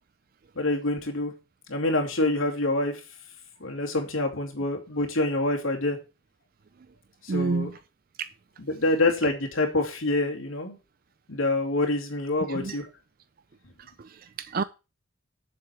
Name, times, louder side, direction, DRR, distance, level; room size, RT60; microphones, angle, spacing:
voice 1, 0.6-1.3 1.7-2.9 3.6-6.0 7.2-7.7 8.7-10.8 11.3-12.9, left 2 dB, 85° left, 2.6 m, -26 dB
voice 2, 7.3-7.8 8.2-8.3 12.5-12.8 13.8-14.6, right 4 dB, 45° right, 0.4 m, -30 dB
7.5 x 7.0 x 6.9 m
head